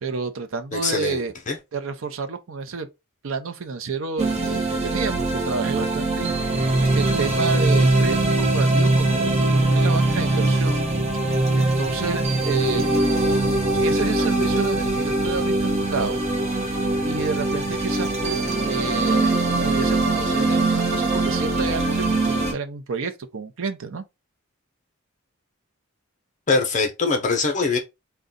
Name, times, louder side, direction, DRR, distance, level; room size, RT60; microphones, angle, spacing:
voice 1, 0.0-1.3 1.7-2.9 3.2-10.8 11.6-12.8 13.8-16.2 16.7-16.8 17.0-24.0, right 5 dB, 70° right, 0.6 m, -30 dB
voice 2, 0.7-1.2 1.5-1.6 26.5-27.8, left 4 dB, 35° left, 0.6 m, -22 dB
sound 1, 4.2-22.5, right 2 dB, 30° right, 0.9 m, -22 dB
3.7 x 2.3 x 3.8 m
head